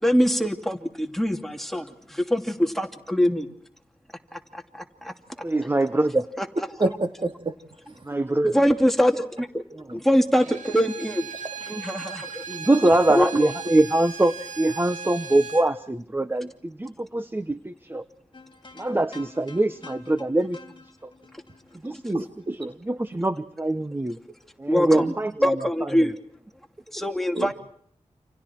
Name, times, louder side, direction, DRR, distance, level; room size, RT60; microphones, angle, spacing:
voice 1, 0.0-3.5 4.3-5.1 6.4-6.7 8.5-9.6 9.9-11.3 11.7-12.4 13.1-13.5 21.9-22.0 24.7-25.1 25.4-26.2 26.9-27.5, equal, ahead, 5 dB, 2.7 m, -23 dB
voice 2, 5.4-6.3 8.0-8.5 12.5-18.1 18.7-20.6 21.0-21.1 21.8-22.2 22.6-24.2 24.6-25.7, right 1 dB, 20° right, 12 dB, 1.1 m, -23 dB
voice 3, 6.8-7.6 7.9-8.1 8.5-8.6 22.1-22.7 24.9-25.1 27.3-27.5, right 2 dB, 40° right, 6 dB, 2.7 m, -28 dB
Bowed string instrument, 10.4-15.7, right 6 dB, 85° right, 2.8 m, -37 dB
sound 1, 18.3-22.7, left 3 dB, 40° left, 2.9 m, -48 dB
29.5 x 28.0 x 4.6 m, 0.63 s
wide cardioid pair, 80°, 12 cm